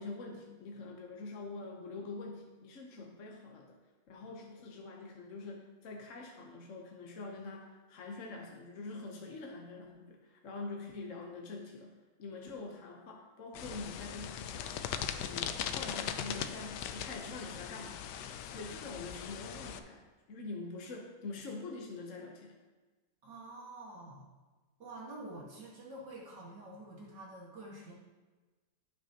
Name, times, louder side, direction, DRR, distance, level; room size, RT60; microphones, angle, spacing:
voice 1, 0.0-3.8 4.1-11.9 12.2-14.8 15.3-18.1 18.4-20.0 20.3-22.6, left 3 dB, 50° left, 0 dB, 1.1 m, -45 dB
sound 1, 13.5-19.8, left 9 dB, 75° left, 1.1 m, -40 dB
voice 2, 23.2-24.3 24.8-27.9, right 1 dB, 65° right, -4 dB, 2.3 m, -48 dB
16.0 x 6.0 x 2.8 m, 1.3 s
omnidirectional pair, 2.0 m